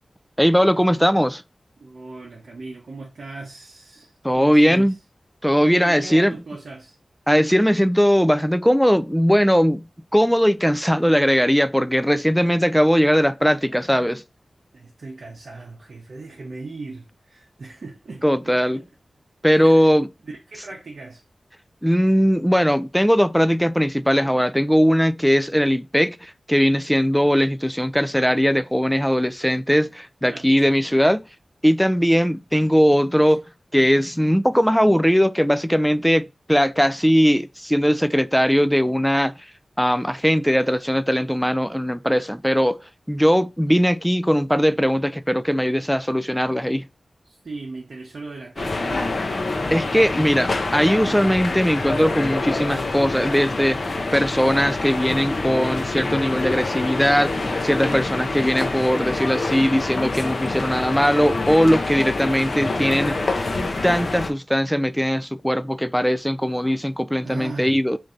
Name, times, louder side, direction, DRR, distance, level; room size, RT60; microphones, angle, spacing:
voice 1, 0.4-1.4 4.2-5.0 5.4-6.4 7.3-14.2 18.2-18.8 19.4-20.1 21.8-31.2 31.6-33.4 33.7-39.5 39.8-42.8 43.1-46.9 49.7-53.8 54.1-63.3 63.8-68.0, equal, ahead, 0.3 m, -19 dB
voice 2, 1.8-5.0 5.7-7.0 14.7-18.8 19.5-19.9 20.2-21.2 30.2-30.7 33.3-33.4 47.2-49.3 58.1-58.4 67.2-67.8, right 3 dB, 75° right, 0.7 m, -38 dB
sound 1, 48.6-64.3, left 2 dB, 60° left, 0.6 m, -26 dB
3.2 x 2.6 x 3.7 m
cardioid pair, 45°, 0 cm